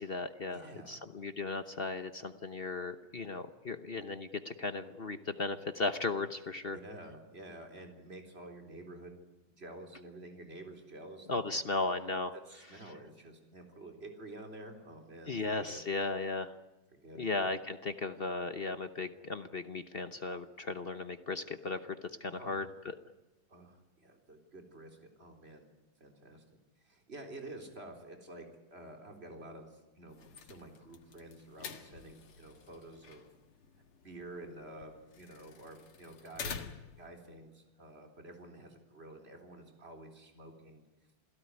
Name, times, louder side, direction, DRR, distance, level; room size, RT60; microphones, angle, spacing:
voice 1, 0.0-6.8 11.3-12.3 15.3-16.5 17.1-22.9, left 3 dB, 45° left, 10 dB, 0.8 m, -36 dB
voice 2, 0.5-1.0 6.7-9.2 9.6-11.4 12.5-15.8 16.9-17.3 22.2-22.6 23.5-25.7 26.0-33.3 34.0-36.5 37.0-40.9, right 1 dB, 30° right, 4 dB, 4.1 m, -50 dB
sound 1, 30.1-37.1, left 6 dB, 85° left, 2.6 m, -48 dB
28.0 x 17.5 x 9.7 m, 1.1 s
omnidirectional pair, 2.3 m